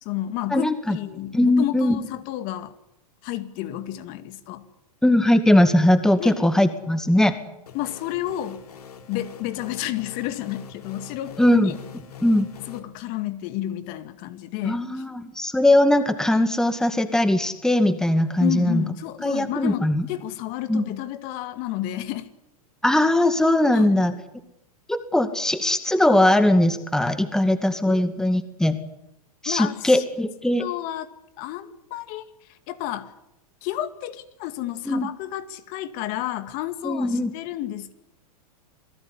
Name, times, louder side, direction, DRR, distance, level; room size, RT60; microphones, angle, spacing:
voice 1, 0.0-2.7 3.2-4.7 6.2-6.4 7.7-8.6 9.1-11.8 12.7-14.8 18.4-22.3 23.7-24.0 27.9-28.0 29.5-30.0 30.6-31.1 31.4-33.1 33.6-37.9, left 13 dB, 45° left, 2.1 m, -31 dB
voice 2, 0.5-1.0 1.3-2.0 5.0-7.3 11.4-11.7 12.2-12.5 14.6-18.8 19.2-20.1 20.7-20.9 22.8-24.2 24.9-28.8 29.4-30.7 34.9-35.1 36.8-37.3, left 1 dB, 5° left, 2.1 m, -20 dB
sound 1, 7.7-12.8, left 7 dB, 85° left, 4.0 m, -43 dB
27.5 x 18.0 x 9.9 m
hypercardioid pair, 115°, 19 cm